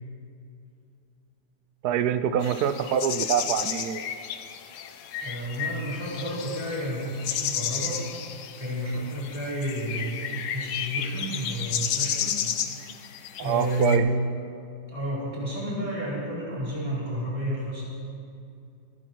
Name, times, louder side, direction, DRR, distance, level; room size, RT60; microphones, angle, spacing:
voice 1, 1.8-4.0 13.4-14.1, right 9 dB, 70° right, 12 dB, 1.2 m, -25 dB
sound 1, 2.4-14.0, left 9 dB, 90° left, 1.5 m, -32 dB
voice 2, 5.2-8.0 8.6-12.4 13.4-14.1 14.9-17.8, right 1 dB, 20° right, -7 dB, 4.5 m, -30 dB
25.5 x 9.8 x 4.6 m, 2.5 s
omnidirectional pair, 1.8 m